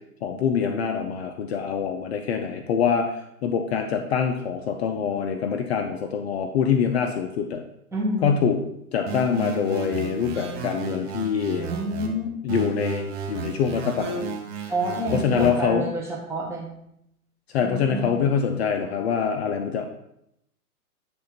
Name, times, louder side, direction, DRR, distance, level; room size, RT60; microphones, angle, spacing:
voice 1, 0.2-7.6 8.2-8.6 8.9-11.7 12.4-14.3 15.1-15.9 17.5-19.9, left 7 dB, 45° left, 6 dB, 0.6 m, -25 dB
voice 2, 7.9-8.5 11.6-12.4 14.7-16.7 17.6-18.2, right 1 dB, 5° right, -4 dB, 1.1 m, -29 dB
sound 1, 9.1-12.1 12.5-15.5, right 5 dB, 40° right, 1.1 m, -33 dB
7.6 x 3.7 x 4.2 m, 0.79 s
hypercardioid pair, 130°, 46 cm